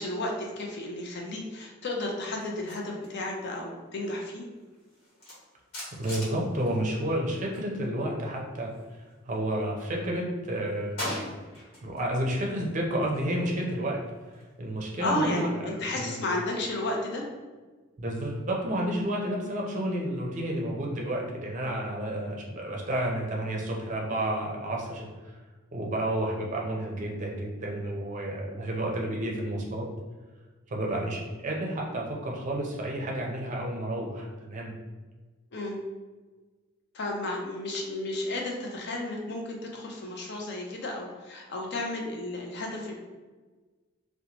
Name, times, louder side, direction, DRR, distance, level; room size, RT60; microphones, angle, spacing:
voice 1, 0.0-4.4 15.0-17.3 35.5-35.8 36.9-42.9, left 1 dB, 55° left, 0 dB, 0.5 m, -33 dB
sound 1, 2.4-7.7 8.0-9.6 10.0-12.1 12.4-15.2, left 1 dB, 80° left, 1.1 m, -43 dB
voice 2, 6.0-8.7 9.3-11.3 11.8-14.0 14.6-16.1 18.0-25.1 25.7-29.9 30.7-34.7, right 1 dB, 40° right, -1 dB, 0.5 m, -31 dB
2.8 x 2.1 x 2.9 m, 1.3 s
head